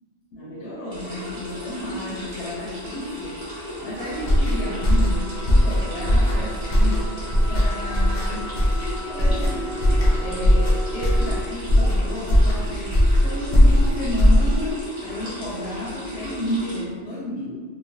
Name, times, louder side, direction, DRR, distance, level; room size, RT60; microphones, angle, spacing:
voice 1, 0.3-3.5 3.8-7.1 7.5-8.5 9.1-9.9 10.2-17.6, left 1 dB, 80° left, -6 dB, 0.9 m, -32 dB
sound 1, 0.8-11.4, equal, 50° right, 0.4 m, -38 dB
sound 2, 0.9-16.8, left 1 dB, 35° right, 0.9 m, -35 dB
sound 3, 4.2-14.8, equal, 50° left, 0.6 m, -19 dB
3.1 x 2.1 x 2.5 m, 1.5 s
omnidirectional pair, 1.2 m